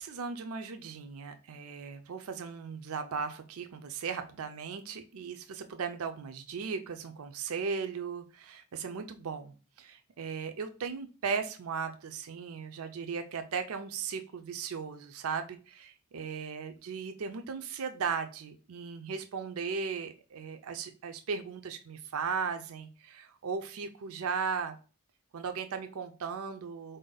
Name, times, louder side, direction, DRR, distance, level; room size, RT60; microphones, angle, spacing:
voice 1, 0.0-24.8 25.3-27.0, right 5 dB, 65° right, 7 dB, 0.4 m, -37 dB
4.1 x 2.6 x 3.8 m, 0.36 s
head